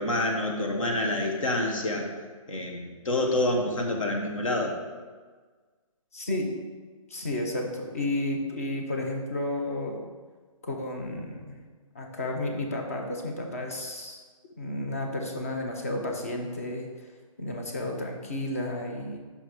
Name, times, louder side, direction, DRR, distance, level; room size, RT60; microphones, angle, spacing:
voice 1, 0.0-2.1 2.5-4.8, left 1 dB, 65° left, 2 dB, 1.1 m, -27 dB
voice 2, 6.1-6.5 7.1-10.0 10.6-11.6 11.9-14.2 14.6-16.9 17.4-19.2, left 1 dB, 25° left, 2 dB, 0.5 m, -32 dB
5.6 x 4.0 x 4.6 m, 1.4 s
hypercardioid pair, 175°, 18 cm